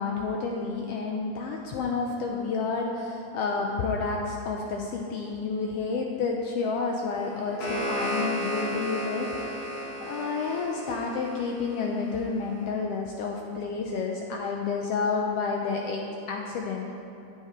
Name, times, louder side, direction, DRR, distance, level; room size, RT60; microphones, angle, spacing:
voice 1, 0.0-17.0, left 4 dB, 80° left, 1 dB, 1.4 m, -30 dB
sound 1, 7.2-12.2, equal, 60° left, 2.5 m, -33 dB
9.1 x 8.5 x 4.3 m, 2.8 s
omnidirectional pair, 3.3 m